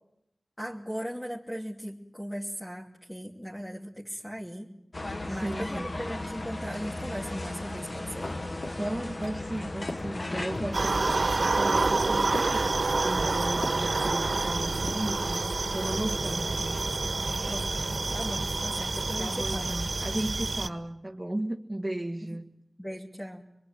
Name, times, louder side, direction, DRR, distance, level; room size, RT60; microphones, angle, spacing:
voice 1, 0.6-4.7 5.3-8.3 17.4-17.7 18.1-19.7 22.8-23.4, equal, 5° left, 2.7 m, -38 dB
sound 1, 4.9-10.8, left 2 dB, 40° left, 1.4 m, -35 dB
voice 2, 5.3-6.0 8.8-12.7 13.0-17.1 19.2-22.5, right 1 dB, 15° right, 1.8 m, -35 dB
sound 2, 8.3-8.4 8.6-8.9 9.2-9.4 9.9-10.1 10.5-10.8 11.1-11.3 11.7-11.9 12.3-12.6 12.9-13.2 13.6-13.9 14.2-14.6 14.9-15.1, left 2 dB, 75° left, 4.2 m, -40 dB
sound 3, 10.7-20.7, right 3 dB, 60° right, 1.6 m, -28 dB
25.0 x 23.0 x 9.0 m
wide cardioid pair, 65°, 0 cm